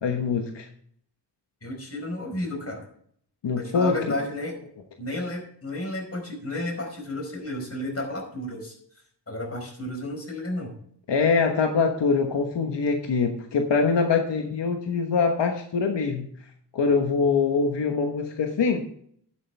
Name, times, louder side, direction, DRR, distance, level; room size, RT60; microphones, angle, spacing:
voice 1, 0.0-0.7 3.4-4.0 11.1-16.3 16.7-18.9, left 5 dB, 80° left, 4 dB, 1.3 m, -23 dB
voice 2, 1.6-2.8 3.6-4.6 5.0-8.7 9.3-10.8, left 1 dB, 35° left, 2 dB, 4.8 m, -32 dB
11.0 x 9.9 x 3.4 m, 0.64 s
cardioid pair, 80°, 42 cm